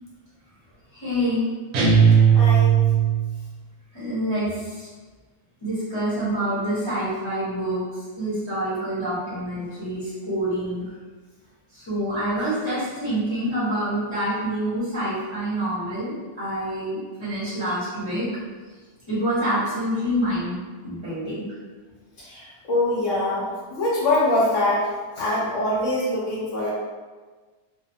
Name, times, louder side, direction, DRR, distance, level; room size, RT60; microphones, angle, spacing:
voice 1, 0.9-1.4 3.9-4.9 5.6-7.8 8.2-10.8 11.7-18.4 19.1-21.5, right 1 dB, 25° left, -12 dB, 0.7 m, -27 dB
sound 1, 1.7-3.4, right 7 dB, 70° right, 0.9 m, -17 dB
voice 2, 2.3-2.7 22.2-24.8 25.2-26.7, left 1 dB, 60° left, -6 dB, 0.9 m, -23 dB
2.5 x 2.3 x 2.6 m, 1.4 s
omnidirectional pair, 1.8 m